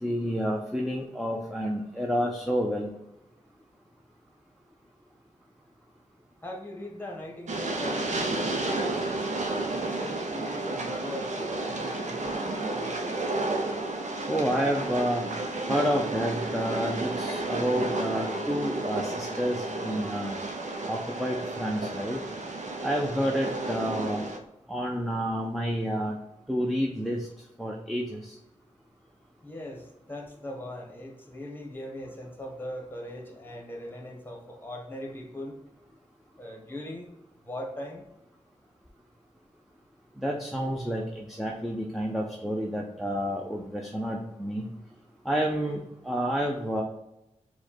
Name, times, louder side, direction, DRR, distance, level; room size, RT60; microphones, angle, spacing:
voice 1, 0.0-2.9 14.3-15.2 15.7-20.4 20.9-22.2 22.8-24.3 24.7-26.2 26.5-27.3 27.6-28.3 40.2-44.7 45.3-46.8, equal, ahead, 0 dB, 0.5 m, -29 dB
voice 2, 6.4-9.0 9.6-13.2 29.4-35.6 36.4-37.1 37.4-38.0, left 1 dB, 15° left, 0 dB, 1.0 m, -40 dB
Train, 7.5-24.4, right 2 dB, 70° right, 0.5 m, -32 dB
4.8 x 2.2 x 4.2 m, 0.88 s
wide cardioid pair, 100°, 13 cm